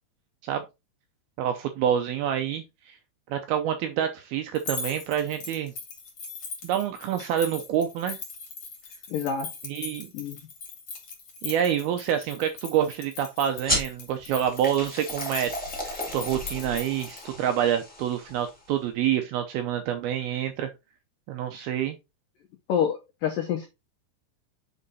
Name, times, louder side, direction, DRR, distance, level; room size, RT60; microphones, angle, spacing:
voice 1, 1.4-3.0 3.3-5.7 6.6-8.2 9.6-10.1 11.4-15.5 15.8-20.7 21.3-22.0, right 9 dB, 85° right, 7 dB, 2.1 m, -27 dB
sound 1, 4.5-17.2, left 4 dB, 45° left, 2.6 m, -40 dB
voice 2, 9.1-9.5 10.1-10.4 22.7-23.7, left 8 dB, 85° left, 2 dB, 1.9 m, -27 dB
sound 2, 13.6-18.7, equal, 5° left, 0.9 m, -34 dB
7.7 x 4.1 x 4.0 m, 0.24 s
omnidirectional pair, 5.2 m